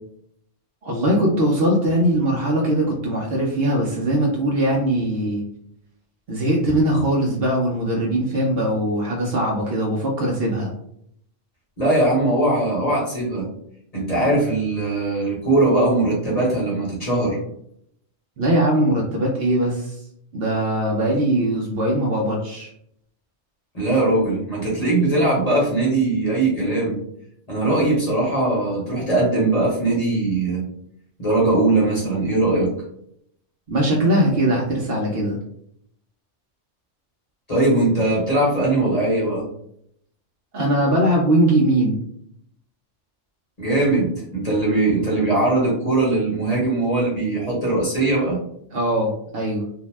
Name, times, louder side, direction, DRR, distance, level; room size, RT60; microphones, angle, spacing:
voice 1, 0.8-5.4 6.3-10.7 18.4-20.0 20.3-22.7 33.7-35.4 40.5-42.0 48.7-49.7, right 1 dB, 60° right, -2 dB, 0.7 m, -21 dB
voice 2, 11.8-13.5 13.9-17.4 23.7-27.0 27.5-30.6 31.2-32.7 37.5-39.4 43.6-48.4, right 2 dB, 35° left, -5 dB, 1.0 m, -20 dB
2.7 x 2.0 x 3.1 m, 0.70 s
omnidirectional pair, 1.3 m